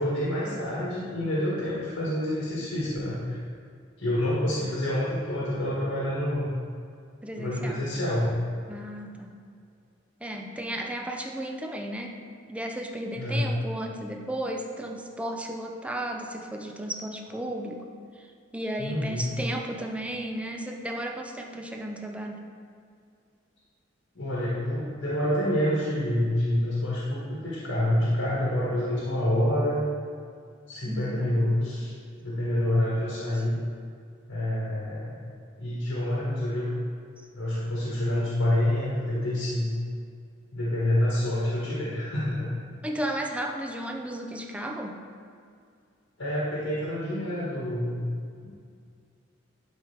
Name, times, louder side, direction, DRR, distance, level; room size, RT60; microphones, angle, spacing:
voice 1, 0.0-3.4 4.0-6.5 7.4-8.3 13.1-13.5 18.8-19.3 24.2-29.8 30.7-31.9 32.2-33.6 34.3-35.2 35.6-36.7 37.3-39.7 40.5-42.6 46.2-48.0 48.4-48.5, left 1 dB, 85° left, -7 dB, 1.8 m, -27 dB
voice 2, 7.2-7.8 8.7-9.3 10.2-12.2 12.5-17.8 18.2-18.3 18.5-22.4 29.5-29.7 30.9-31.3 32.7-32.8 38.9-39.0 42.8-45.0, right 1 dB, 5° right, 2 dB, 0.6 m, -34 dB
11.5 x 4.7 x 3.5 m, 2.3 s
head